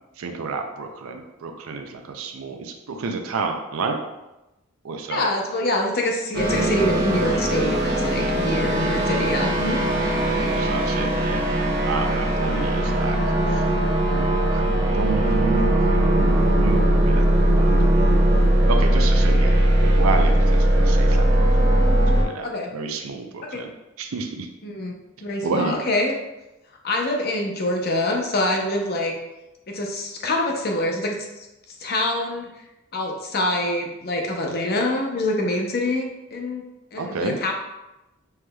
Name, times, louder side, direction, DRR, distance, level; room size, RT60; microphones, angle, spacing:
voice 1, 0.2-4.0 4.8-5.3 8.4-8.8 10.2-11.5 11.8-13.7 14.1-18.0 18.7-19.6 19.8-21.7 22.2-23.7 24.0-24.5 25.4-25.8 37.0-37.3, right 4 dB, 85° right, 5 dB, 0.5 m, -30 dB
voice 2, 5.1-9.8 22.4-22.7 23.5-23.6 24.6-24.9 25.2-26.1 26.8-29.1 29.7-31.2 31.8-32.5 32.9-36.6 36.9-37.5, left 1 dB, 50° left, 1 dB, 0.7 m, -25 dB
sound 1, 6.3-22.2, right 1 dB, 50° right, 1.0 m, -19 dB
5.6 x 3.2 x 2.3 m, 0.98 s
head